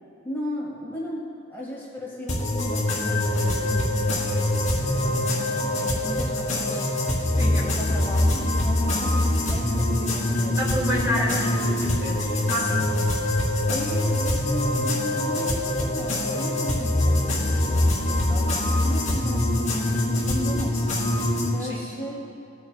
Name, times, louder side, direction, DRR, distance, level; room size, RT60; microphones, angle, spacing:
voice 1, 0.2-7.1 7.4-10.6 11.1-11.4 12.6-13.0 13.7-20.9 21.5-22.2, left 1 dB, 10° left, -5 dB, 2.1 m, -35 dB
sound 1, 2.3-21.5, left 1 dB, 40° left, 2.9 m, -24 dB
voice 2, 7.3-7.9 9.2-9.3 10.6-13.0 21.6-21.9, equal, 15° right, -5 dB, 2.4 m, -30 dB
19.5 x 9.1 x 2.4 m, 2.6 s
head